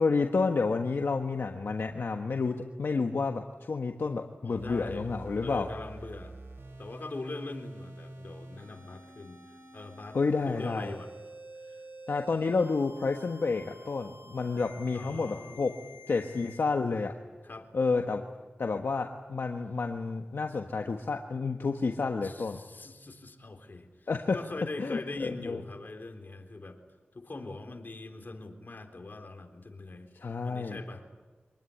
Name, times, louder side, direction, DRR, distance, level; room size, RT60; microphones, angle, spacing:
voice 1, 0.0-5.7 10.1-10.9 12.1-15.7 16.1-17.1 17.7-18.2 18.6-22.6 24.1-24.4 24.8-25.6 30.1-30.8, left 4 dB, 80° left, 4 dB, 1.3 m, -30 dB
voice 2, 4.4-5.1 5.4-6.4 6.8-11.1 11.6-11.8 14.9-16.0 17.4-17.7 22.2-26.8 27.1-30.1 30.4-31.0, left 2 dB, 60° left, 4 dB, 3.8 m, -42 dB
sound 1, 4.6-16.6, right 1 dB, 85° right, 5.9 m, -48 dB
25.0 x 20.0 x 9.9 m, 1.3 s
wide cardioid pair, 60°, 4 cm